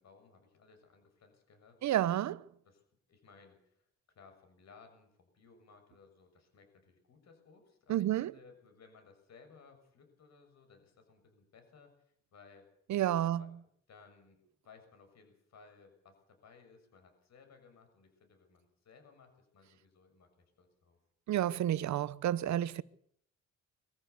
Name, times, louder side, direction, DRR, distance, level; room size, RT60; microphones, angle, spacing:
voice 1, 0.0-1.8 2.7-2.8 3.1-12.7 13.2-13.5 13.9-20.3 20.6-21.0, left 5 dB, 60° left, 6.9 m, -60 dB
voice 2, 1.8-2.4 7.9-8.3 12.9-13.4 21.3-22.8, right 12 dB, 70° right, 0.9 m, -30 dB
23.0 x 14.5 x 8.1 m
cardioid pair, 90°, 30 cm